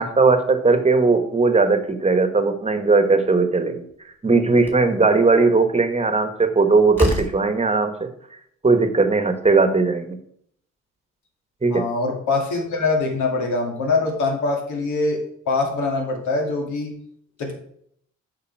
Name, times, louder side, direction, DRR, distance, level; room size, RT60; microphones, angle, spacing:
voice 1, 0.0-3.8 4.2-8.1 8.6-10.2 11.6-11.9, right 3 dB, 20° right, 8 dB, 1.3 m, -18 dB
Slam, 3.9-4.0 4.6-4.9 6.4-6.5 6.9-7.5, left 1 dB, 5° left, 2.3 m, -25 dB
voice 2, 11.7-15.2 15.5-16.9 17.4-17.5, left 3 dB, 80° left, 0 dB, 2.4 m, -23 dB
8.5 x 5.3 x 4.6 m, 0.68 s
cardioid pair, 90°, 30 cm